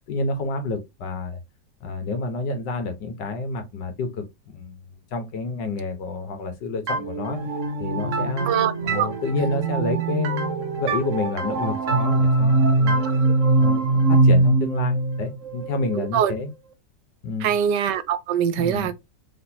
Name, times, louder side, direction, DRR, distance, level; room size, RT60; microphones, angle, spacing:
voice 1, 0.1-1.4 1.8-7.4 7.8-8.5 8.8-13.2 13.6-16.5 17.2-17.5 18.5-18.9, left 3 dB, 90° left, 1.8 m, -29 dB
sound 1, 6.9-16.4, right 3 dB, 55° right, 1.0 m, -22 dB
voice 2, 8.5-9.1 13.2-13.3 16.0-16.3 17.4-18.9, right 9 dB, 85° right, 1.3 m, -23 dB
4.3 x 3.7 x 2.8 m
omnidirectional pair, 1.8 m